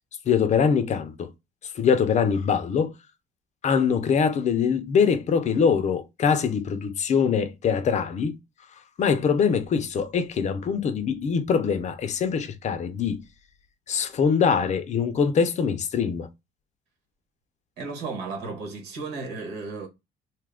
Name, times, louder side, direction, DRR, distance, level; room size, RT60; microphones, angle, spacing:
voice 1, 0.3-1.3 1.8-2.9 3.6-8.4 9.0-13.2 13.9-16.3, left 6 dB, 45° left, 0.5 m, -23 dB
voice 2, 17.8-19.9, right 4 dB, 85° right, 1.3 m, -34 dB
2.8 x 2.4 x 3.4 m
cardioid pair, 110°, 17 cm